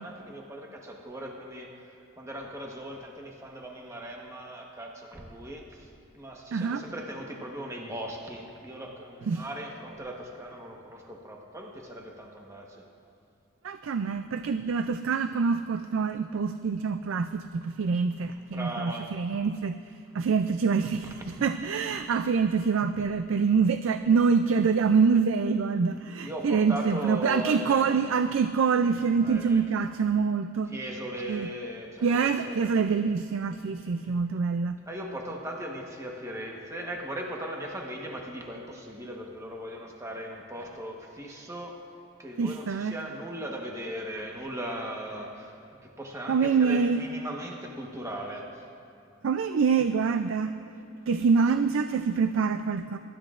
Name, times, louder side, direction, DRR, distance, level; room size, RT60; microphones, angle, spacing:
voice 1, 0.0-1.7 2.2-5.9 6.1-12.8 18.5-19.1 26.2-28.0 29.2-29.6 30.7-32.1 32.4-32.7 34.9-41.8 42.2-45.6 46.0-48.5, right 1 dB, 15° right, 0 dB, 1.1 m, -38 dB
voice 2, 6.5-6.8 9.3-9.5 13.6-19.8 20.1-30.7 31.3-31.5 32.0-34.8 42.4-42.9 46.3-47.1 49.2-50.5 51.1-53.0, right 5 dB, 80° right, 10 dB, 0.4 m, -25 dB
23.0 x 12.5 x 2.5 m, 2.5 s
head